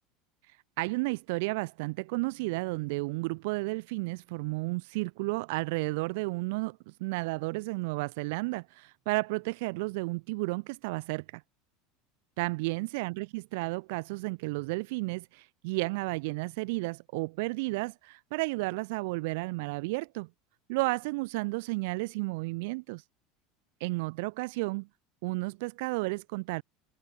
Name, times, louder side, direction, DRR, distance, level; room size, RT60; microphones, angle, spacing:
voice 1, 0.8-11.4 12.4-20.3 20.7-23.0 23.8-24.9 25.2-26.6, right 25 dB, 65° right, 1.3 m, -32 dB
supercardioid pair, 165°, 0 cm